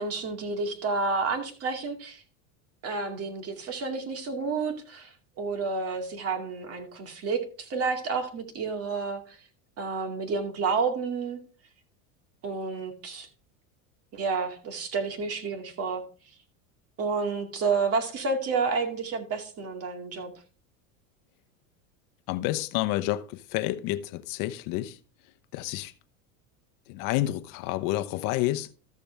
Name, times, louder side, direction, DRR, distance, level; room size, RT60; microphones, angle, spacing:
voice 1, 0.0-2.2 2.8-5.1 5.4-9.4 9.8-11.4 12.4-13.3 14.1-16.0 17.0-20.3, right 4 dB, 35° right, 2.3 m, -30 dB
voice 2, 22.3-25.0 25.5-25.9 26.9-28.7, left 15 dB, 55° left, 0.9 m, -29 dB
13.5 x 6.8 x 3.4 m
supercardioid pair, 120°, 40 cm